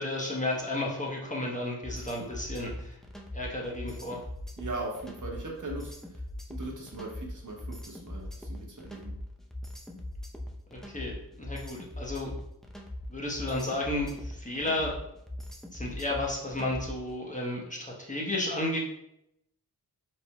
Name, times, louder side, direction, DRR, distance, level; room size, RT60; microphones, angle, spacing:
voice 1, 0.0-2.9 3.3-4.2 10.7-12.3 13.1-14.9 15.7-18.8, left 1 dB, 20° left, -3 dB, 1.1 m, -33 dB
sound 1, 1.8-17.1, left 1 dB, ahead, 0.6 m, -40 dB
voice 2, 4.6-6.2 6.5-9.1, right 2 dB, 50° right, -2 dB, 1.2 m, -39 dB
4.7 x 3.8 x 2.3 m, 0.80 s
cardioid pair, 50°, 40 cm